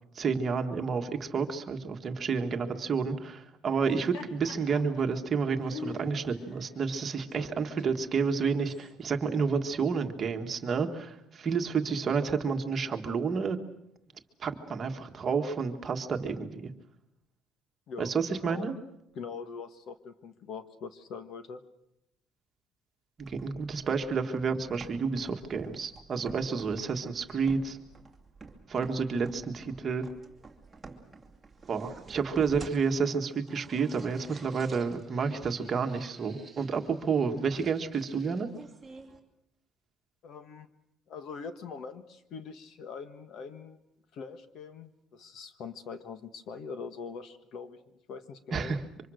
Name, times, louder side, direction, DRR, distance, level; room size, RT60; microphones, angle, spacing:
voice 1, 0.2-13.6 14.4-16.7 18.0-18.7 23.2-27.8 28.7-30.1 31.7-38.5 48.5-48.8, right 5 dB, 30° right, 5 dB, 1.7 m, -30 dB
Laughter, 3.7-8.9, left 5 dB, 80° left, 4.1 m, -46 dB
voice 2, 19.1-21.6 40.2-40.7 41.1-43.8 44.1-47.8 48.1-48.8, left 5 dB, 50° left, 10 dB, 1.5 m, -42 dB
sound 1, 23.2-39.2, right 3 dB, 5° right, 2.7 m, -51 dB
28.0 x 25.0 x 6.5 m, 0.81 s
cardioid pair, 170°, 0 cm